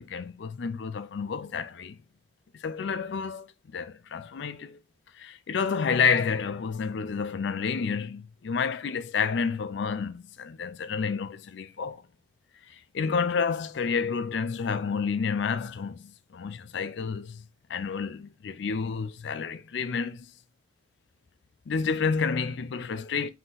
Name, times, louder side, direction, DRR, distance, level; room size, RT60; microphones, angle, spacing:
voice 1, 0.0-2.0 2.5-4.8 5.1-12.0 12.7-20.3 21.7-23.3, left 5 dB, 60° left, 0.4 m, -30 dB
4.0 x 2.9 x 3.8 m
head